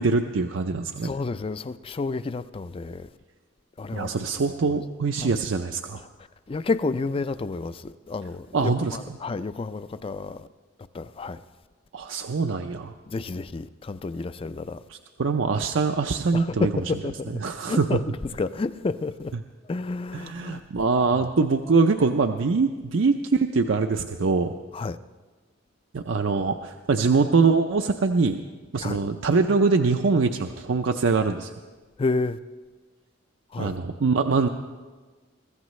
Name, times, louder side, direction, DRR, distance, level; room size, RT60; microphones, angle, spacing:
voice 1, 0.0-1.1 3.9-6.0 8.5-9.2 11.9-12.9 14.9-16.7 17.4-18.0 20.1-24.5 25.9-28.4 28.7-31.5 33.6-34.5, right 4 dB, 70° right, 0.5 m, -23 dB
voice 2, 1.0-3.1 3.8-4.3 5.2-5.4 6.5-10.5 10.9-11.4 13.1-14.8 16.3-17.3 17.7-19.3 19.7-20.6 21.1-21.3 24.7-25.0 28.8-29.0 32.0-32.4 33.5-33.8, left 3 dB, 30° left, 0.4 m, -30 dB
23.0 x 14.5 x 3.2 m
head